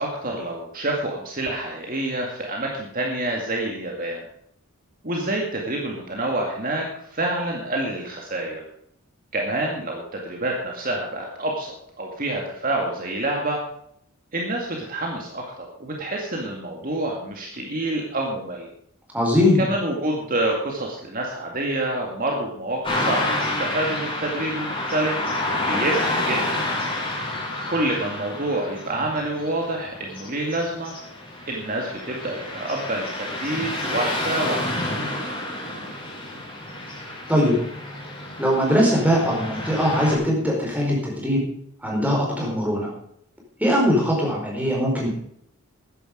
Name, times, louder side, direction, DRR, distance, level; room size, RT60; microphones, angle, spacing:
voice 1, 0.0-4.2 5.0-6.9 7.1-8.6 9.3-13.6 14.3-18.7 19.6-25.2 25.7-26.4 27.7-30.9 31.5-34.7, right 1 dB, 40° right, 0 dB, 2.1 m, -27 dB
voice 2, 19.1-19.6 37.3-37.6 38.4-41.4 41.8-42.9 43.6-45.1, equal, 5° right, -2 dB, 4.7 m, -21 dB
Car passing by / Traffic noise roadway noise, 22.8-40.2, left 1 dB, 25° left, 5.6 m, -29 dB
14.0 x 10.0 x 5.1 m, 0.69 s
head